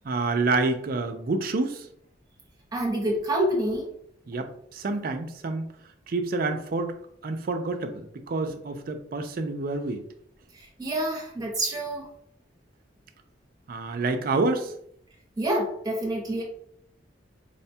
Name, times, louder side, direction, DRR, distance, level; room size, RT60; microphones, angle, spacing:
voice 1, 0.0-1.9 4.3-5.7 6.1-7.0 7.2-10.0 13.7-14.7, right 3 dB, 50° right, 0.4 m, -28 dB
voice 2, 2.7-3.9 10.5-12.1 15.4-16.4, right 1 dB, 20° right, 0.8 m, -27 dB
4.8 x 2.2 x 2.7 m
head